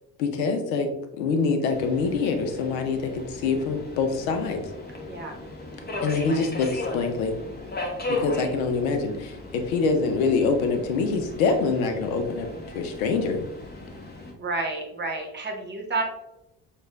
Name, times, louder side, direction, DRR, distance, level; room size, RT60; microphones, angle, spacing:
voice 1, 0.2-0.9 1.2-4.6 6.0-7.3 8.1-12.5 12.7-13.4, left 4 dB, 65° left, 6 dB, 0.7 m, -25 dB
Subway metro underground, 1.7-14.3, left 2 dB, 20° left, 0.9 m, -37 dB
voice 2, 5.0-5.4 14.3-16.0, right 3 dB, 25° right, 0 dB, 1.0 m, -30 dB
6.2 x 2.4 x 2.3 m, 0.93 s
figure-of-eight pair, 55°, 46 cm